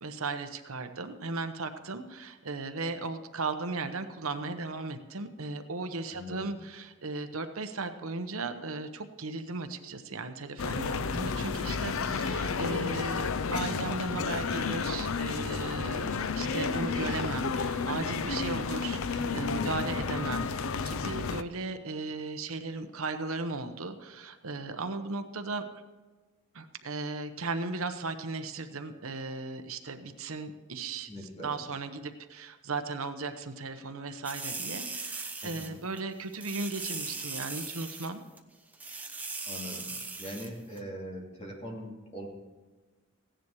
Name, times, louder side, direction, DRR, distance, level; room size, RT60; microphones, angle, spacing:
voice 1, 0.0-25.8 26.5-38.2, right 3 dB, 75° right, 8 dB, 1.0 m, -36 dB
voice 2, 6.1-6.5 12.2-12.3 19.6-19.9 31.1-31.6 35.4-35.8 39.4-39.9 40.2-42.3, equal, 30° left, -2 dB, 2.8 m, -42 dB
sound 1, 10.6-21.4, left 5 dB, 70° left, 0.6 m, -31 dB
sound 2, 34.2-35.7 36.0-36.1 36.3-38.1 38.4-38.5 38.7-40.5 40.8-40.9, right 3 dB, 5° right, 0.8 m, -39 dB
16.0 x 10.5 x 4.7 m, 1.3 s
head